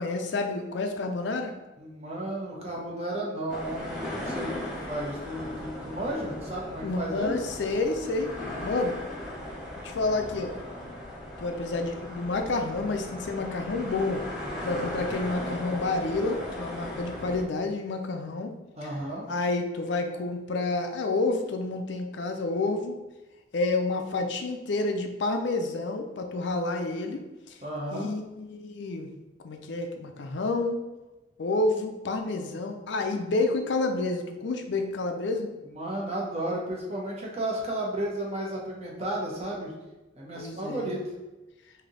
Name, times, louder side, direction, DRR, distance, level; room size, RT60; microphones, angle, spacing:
voice 1, 0.0-1.5 6.8-8.3 8.6-8.9 9.8-10.5 11.4-14.2 14.6-18.5 18.8-18.9 19.3-22.9 23.5-27.6 27.9-29.1 29.4-30.8 31.4-35.5 40.4-41.0, left 3 dB, 65° left, 5 dB, 0.4 m, -29 dB
voice 2, 1.8-7.4 18.8-19.2 27.6-28.1 35.6-39.7 40.1-41.0, right 1 dB, 30° right, -3 dB, 0.8 m, -33 dB
sound 1, 3.5-17.4, left 1 dB, 5° right, 0.6 m, -37 dB
3.3 x 2.7 x 3.8 m, 1.1 s
head